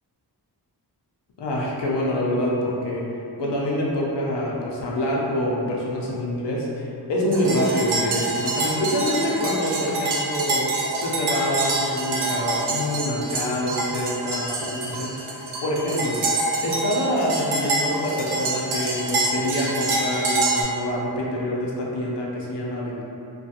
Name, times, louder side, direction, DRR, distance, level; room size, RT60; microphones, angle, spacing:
voice 1, 1.4-3.0 3.4-10.6 11.0-15.1 15.6-16.2 16.6-23.0, left 1 dB, 90° left, -4 dB, 0.6 m, -26 dB
sound 1, 7.3-20.6, right 2 dB, 75° right, 0.6 m, -26 dB
2.5 x 2.3 x 2.7 m, 2.8 s
wide cardioid pair, 80°, 40 cm